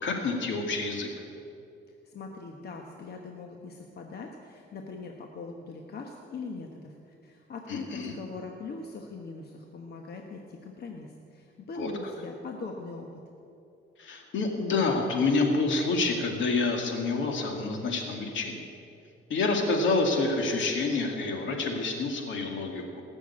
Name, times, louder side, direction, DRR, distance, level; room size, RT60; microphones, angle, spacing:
voice 1, 0.0-1.1 7.7-8.1 11.8-11.9 14.0-18.7 19.3-22.8, left 3 dB, 70° left, 3 dB, 2.3 m, -28 dB
voice 2, 1.9-13.2, left 4 dB, 55° left, 2 dB, 1.3 m, -41 dB
18.5 x 7.1 x 8.6 m, 2.6 s
cardioid pair, 90°, 20 cm